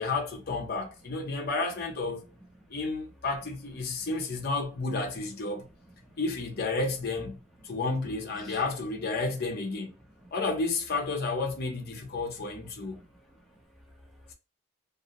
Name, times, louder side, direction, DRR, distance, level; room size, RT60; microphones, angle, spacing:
voice 1, 0.0-2.2 2.7-5.7 6.2-7.4 7.6-9.9 10.3-13.0, left 3 dB, 45° left, 0.6 m, -31 dB
voice 2, 12.7-14.3, equal, ahead, 0.5 m, -55 dB
2.5 x 2.0 x 2.8 m
head